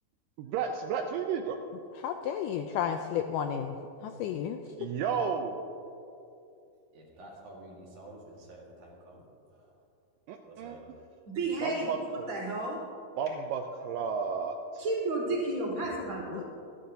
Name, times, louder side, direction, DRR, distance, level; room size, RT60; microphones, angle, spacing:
voice 1, 0.4-1.6 4.8-5.7 10.3-10.8 11.6-12.3 13.2-14.5, right 6 dB, 80° right, 4 dB, 2.1 m, -32 dB
voice 2, 2.0-3.8 4.0-4.6 16.3-16.4, left 8 dB, 85° left, 6 dB, 1.9 m, -32 dB
voice 3, 6.9-9.2 9.5-9.7 10.5-10.9, right 1 dB, 60° right, -3 dB, 3.2 m, -50 dB
voice 4, 11.3-12.8 14.8-16.4, right 2 dB, 40° right, -7 dB, 4.1 m, -32 dB
26.5 x 10.0 x 2.8 m, 2.7 s
omnidirectional pair, 4.3 m